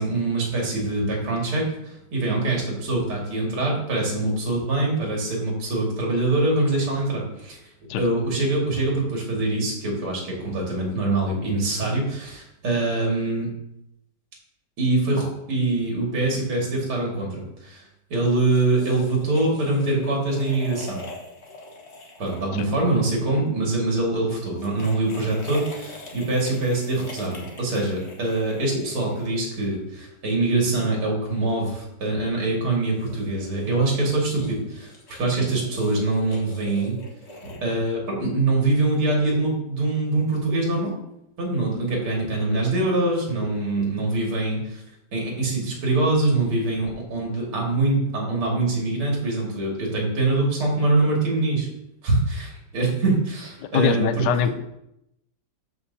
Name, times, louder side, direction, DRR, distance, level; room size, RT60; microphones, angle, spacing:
voice 1, 0.0-7.6 8.0-13.5 14.8-17.8 18.1-21.0 22.2-37.0 37.4-40.9 41.4-44.8 45.1-51.7 52.0-54.4, right 2 dB, 75° right, -2 dB, 3.0 m, -24 dB
sound 1, 18.2-23.4 24.4-29.6 32.8-37.6, left 2 dB, 35° left, 1.4 m, -43 dB
voice 2, 53.7-54.5, left 10 dB, 80° left, 10 dB, 0.9 m, -22 dB
13.0 x 5.2 x 2.7 m, 0.83 s
omnidirectional pair, 2.4 m